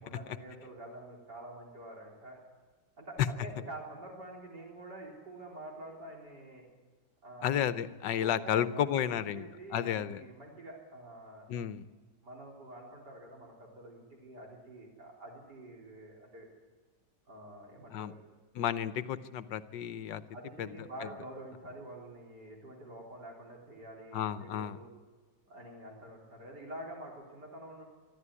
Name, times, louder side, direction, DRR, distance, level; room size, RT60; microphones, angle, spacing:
voice 1, 0.0-2.4 3.0-6.7 7.2-7.6 8.2-11.5 12.2-16.5 17.3-18.2 20.3-24.9 25.5-27.8, right 1 dB, 70° right, -2 dB, 4.4 m, -47 dB
voice 2, 7.4-10.2 11.5-11.9 17.9-18.1 18.5-20.2 20.6-20.7 24.1-24.8, left 10 dB, 80° left, 13 dB, 1.5 m, -32 dB
24.0 x 13.0 x 9.7 m, 1.4 s
omnidirectional pair, 1.9 m